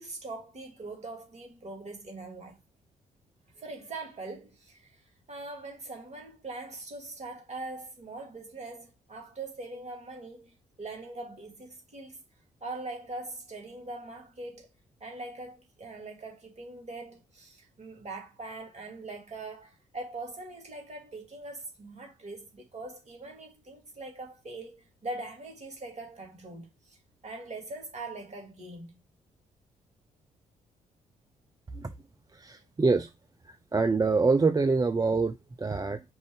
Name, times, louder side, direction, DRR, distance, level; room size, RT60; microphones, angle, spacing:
voice 1, 0.0-2.6 3.5-12.2 12.6-14.7 15.0-27.0 27.2-29.0, right 2 dB, 35° right, 2.5 m, -42 dB
voice 2, 32.3-33.1 33.5-36.0, right 4 dB, 20° right, 0.5 m, -26 dB
5.3 x 2.5 x 3.6 m
hypercardioid pair, 40°, 19 cm